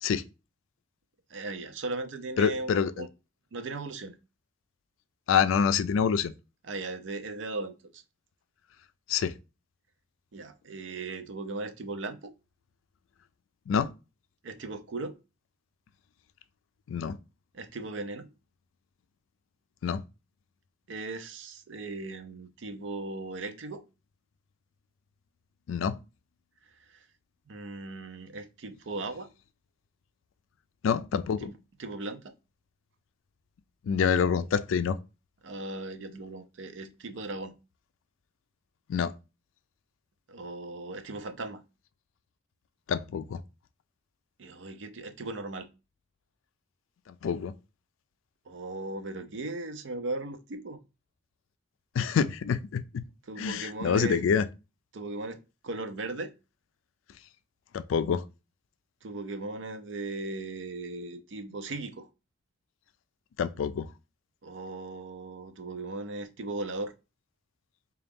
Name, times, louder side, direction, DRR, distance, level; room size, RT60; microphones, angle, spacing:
voice 1, 1.3-3.1 3.5-4.2 6.6-8.0 10.3-12.3 14.4-15.2 17.5-18.3 20.9-23.8 26.9-27.1 27.5-29.3 31.4-31.5 31.8-32.3 35.4-37.5 40.3-41.6 44.4-45.7 48.5-50.8 53.3-54.2 54.9-56.3 59.0-62.1 64.4-66.9, right 2 dB, 75° right, 0.5 m, -37 dB
voice 2, 2.4-3.1 5.3-6.3 9.1-9.3 13.7-13.9 16.9-17.2 19.8-20.0 25.7-26.0 30.8-31.5 33.9-35.0 38.9-39.1 42.9-43.4 47.2-47.5 52.0-53.0 53.4-54.4 57.7-58.2 63.4-63.9, left 7 dB, 90° left, 0.3 m, -26 dB
3.8 x 2.3 x 3.4 m
head